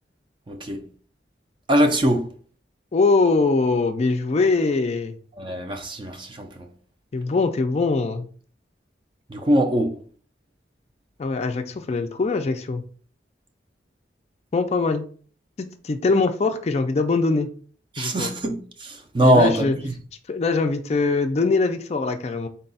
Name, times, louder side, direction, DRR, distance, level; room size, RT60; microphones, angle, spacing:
voice 1, 0.5-0.9 1.7-2.3 5.4-6.7 9.3-10.0 17.9-19.9, right 1 dB, 25° right, 0.5 m, -22 dB
voice 2, 2.9-5.1 7.1-8.3 11.2-12.8 14.5-15.0 15.6-17.5 18.0-18.3 19.2-19.7 20.3-22.5, left 3 dB, 35° left, 0.3 m, -22 dB
4.0 x 2.3 x 4.0 m
head